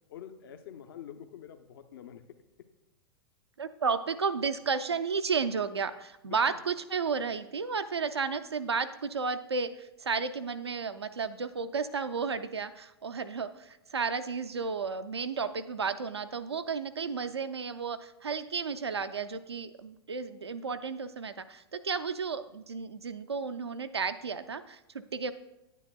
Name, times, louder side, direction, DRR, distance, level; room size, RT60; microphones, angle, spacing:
voice 1, 0.1-2.7 6.2-6.6, left 9 dB, 60° left, 7 dB, 0.6 m, -47 dB
voice 2, 3.6-25.3, right 5 dB, 85° right, 9 dB, 0.5 m, -33 dB
10.0 x 9.1 x 2.2 m, 0.91 s
figure-of-eight pair, 95°, 13 cm